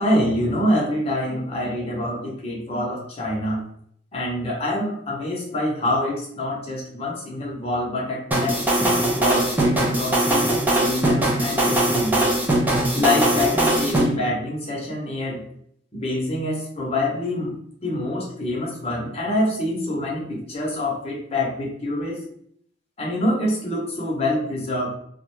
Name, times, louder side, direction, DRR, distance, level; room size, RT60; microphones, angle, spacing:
voice 1, 0.0-3.6 4.1-12.2 12.9-15.4 15.9-17.5 17.8-22.2 23.0-24.9, left 1 dB, 35° left, -3 dB, 0.8 m, -26 dB
sound 1, 8.3-14.1, right 1 dB, 10° right, 0.4 m, -20 dB
2.4 x 2.1 x 3.0 m, 0.66 s
head